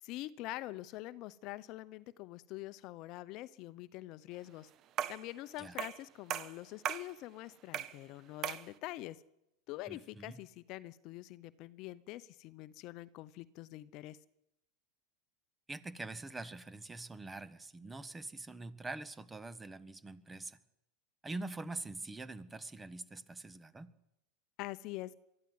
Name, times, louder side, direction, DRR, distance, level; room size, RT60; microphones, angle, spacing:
voice 1, 0.0-4.7 5.1-9.2 9.7-14.2 24.6-25.1, left 17 dB, 50° left, 16 dB, 0.8 m, -45 dB
sound 1, 5.0-5.3 5.8-6.0 6.3-7.1 7.7-8.0 8.4-8.7, right 10 dB, 45° right, 1.2 m, -37 dB
voice 2, 9.9-10.4 15.7-20.6 21.2-23.9, right 2 dB, 15° right, 14 dB, 1.4 m, -44 dB
23.0 x 13.0 x 9.5 m, 0.88 s
hypercardioid pair, 105°, 0 cm